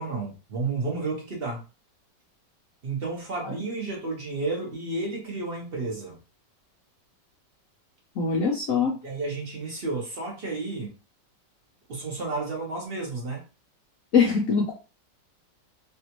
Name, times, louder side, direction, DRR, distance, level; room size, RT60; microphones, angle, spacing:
voice 1, 0.0-1.6 2.8-6.2 9.0-10.9 11.9-13.4, right 3 dB, 40° right, -1 dB, 1.1 m, -31 dB
voice 2, 8.2-8.9 14.1-14.7, left 5 dB, 60° left, -1 dB, 0.9 m, -22 dB
3.4 x 2.6 x 2.9 m, 0.31 s
omnidirectional pair, 1.9 m